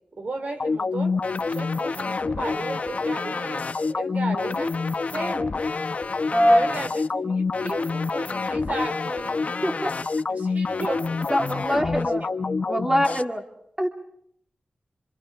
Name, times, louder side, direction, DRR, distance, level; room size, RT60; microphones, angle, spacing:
voice 1, 0.2-1.2 1.5-4.8 5.1-5.6 6.5-9.4 10.3-11.1 11.9-12.1, right 2 dB, 65° right, 5 dB, 4.1 m, -34 dB
sound 1, 0.6-13.2, left 4 dB, 55° left, 0.9 m, -27 dB
voice 2, 6.3-6.7 9.6-9.9 11.3-12.2 12.7-13.4 13.8-13.9, equal, 15° right, 2 dB, 2.6 m, -22 dB
26.5 x 26.5 x 4.8 m, 0.71 s
wide cardioid pair, 70°, 3 cm